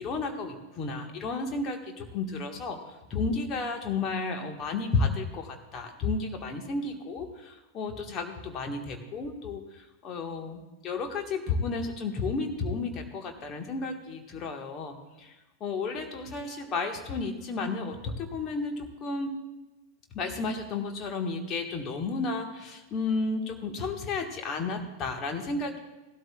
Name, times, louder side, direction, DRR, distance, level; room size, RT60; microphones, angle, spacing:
voice 1, 0.0-15.3 15.6-19.3 20.1-25.8, left 3 dB, 30° left, 3 dB, 1.7 m, -32 dB
17.5 x 12.5 x 2.4 m, 1.1 s
figure-of-eight pair, 90°, 0 cm